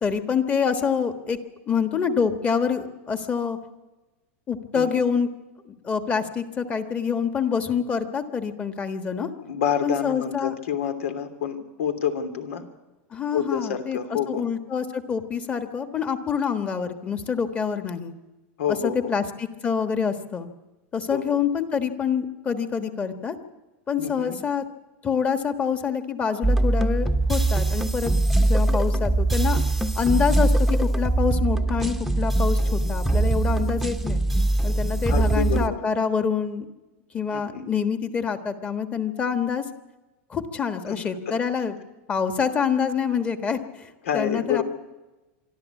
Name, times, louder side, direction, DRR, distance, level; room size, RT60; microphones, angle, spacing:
voice 1, 0.0-1.4 1.7-3.6 4.5-5.3 5.7-9.3 9.8-10.5 13.1-14.0 14.3-18.1 18.8-20.5 20.9-23.4 23.9-24.6 25.0-28.1 28.4-29.6 29.9-34.2 34.6-36.7 37.1-39.6 40.3-41.8 42.1-44.6, left 6 dB, 20° left, 9 dB, 1.5 m, -26 dB
voice 2, 4.7-5.1 9.4-12.6 13.3-14.4 18.6-19.1 21.1-21.4 24.0-24.4 35.1-35.8 37.3-37.6 40.9-41.0 41.3-41.4 44.0-44.6, left 8 dB, 85° left, 8 dB, 3.0 m, -28 dB
sound 1, 26.4-35.7, right 2 dB, ahead, 1.0 m, -22 dB
25.0 x 13.0 x 8.4 m, 1.1 s
supercardioid pair, 150°, 7 cm